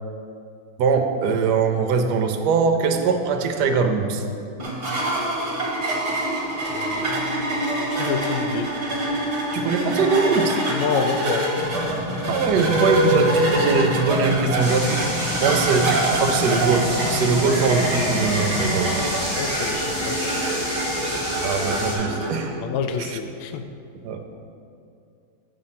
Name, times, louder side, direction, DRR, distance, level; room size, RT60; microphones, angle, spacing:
voice 1, 0.8-4.2 9.5-10.6 12.3-15.1 15.4-19.1 21.4-22.6 23.0-23.2 24.0-24.2, right 5 dB, 70° right, 5 dB, 1.1 m, -22 dB
sound 1, 4.6-22.4, right 1 dB, 40° right, 1.3 m, -25 dB
voice 2, 6.7-7.2 7.9-8.7 10.7-11.5 15.4-15.7 19.4-20.4 22.6-23.7, left 6 dB, 80° left, 8 dB, 1.3 m, -28 dB
sound 2, 11.6-18.9, left 1 dB, 50° left, 1.9 m, -31 dB
sound 3, 14.6-21.9, equal, 20° left, 1.2 m, -29 dB
7.9 x 4.3 x 5.8 m, 2.5 s
omnidirectional pair, 2.2 m